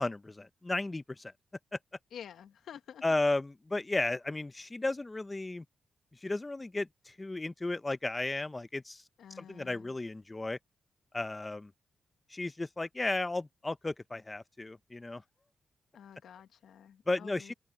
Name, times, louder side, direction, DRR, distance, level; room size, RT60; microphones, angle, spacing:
voice 1, 0.0-1.3 1.7-1.8 3.0-5.6 6.2-9.0 9.4-10.6 11.1-11.7 12.3-15.2 17.1-17.5, left 2 dB, 25° left, 0.7 m, -34 dB
voice 2, 2.1-3.0 9.2-9.9 15.9-17.5, left 8 dB, 90° left, 1.1 m, -49 dB
open air
cardioid pair, 80°, 0 cm